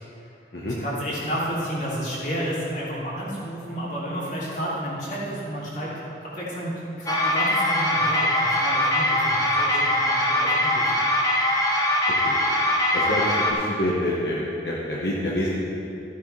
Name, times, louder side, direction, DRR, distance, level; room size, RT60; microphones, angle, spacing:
voice 1, 0.8-5.9 6.2-6.7 7.0-10.9, equal, 45° left, -7 dB, 2.9 m, -31 dB
sound 1, 7.1-13.5, left 1 dB, 20° left, 0.9 m, -22 dB
voice 2, 12.9-15.5, left 1 dB, 70° left, -5 dB, 1.2 m, -27 dB
14.0 x 9.2 x 3.3 m, 2.7 s
head